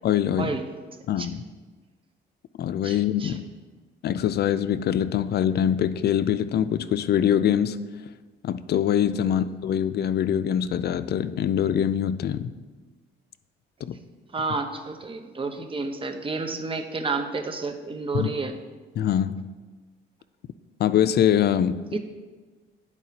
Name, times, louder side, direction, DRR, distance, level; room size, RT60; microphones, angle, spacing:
voice 1, 0.0-0.5 1.1-1.4 2.6-3.5 4.0-7.8 8.4-12.5 13.8-14.0 18.1-18.3 19.0-19.4 20.8-21.8, left 9 dB, 55° left, 13 dB, 0.4 m, -23 dB
voice 2, 2.8-3.4 9.2-9.3 14.3-18.5 21.9-22.0, right 3 dB, 25° right, 6 dB, 0.8 m, -30 dB
11.0 x 4.7 x 2.9 m, 1.3 s
cardioid pair, 90°, 20 cm